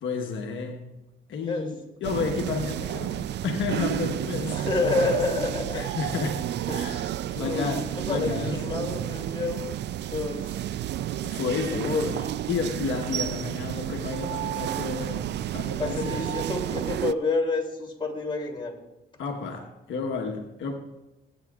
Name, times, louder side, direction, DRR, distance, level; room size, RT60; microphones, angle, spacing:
voice 1, 0.0-0.8 1.3-4.6 5.7-6.4 6.7-8.6 11.2-12.2 12.5-16.3 19.2-20.8, left 5 dB, 75° left, 1 dB, 1.2 m, -31 dB
sound 1, 2.0-17.1, right 12 dB, 60° right, 0.4 m, -31 dB
voice 2, 4.6-5.8 6.7-6.9 7.4-9.7 10.1-10.5 11.7-12.1 15.8-18.7, left 3 dB, 25° left, -1 dB, 2.8 m, -28 dB
18.5 x 9.0 x 2.4 m, 0.99 s
cardioid pair, 90°, 20 cm